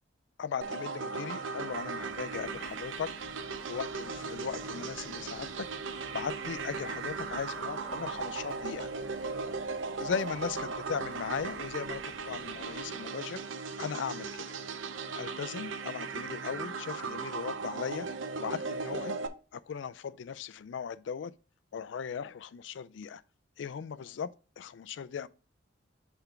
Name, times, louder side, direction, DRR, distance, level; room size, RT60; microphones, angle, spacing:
voice 1, 0.4-3.1 3.6-5.7 6.1-8.9 10.0-13.4 13.8-14.5 15.2-18.1 18.4-19.2 19.5-21.3 21.7-23.2 23.6-24.3 24.6-25.3, left 6 dB, 70° left, 0.4 m, -38 dB
sound 1, 0.6-19.3, right 4 dB, 85° right, 0.6 m, -37 dB
sound 2, 1.5-13.1, left 1 dB, 5° right, 1.7 m, -53 dB
5.7 x 3.4 x 5.7 m
head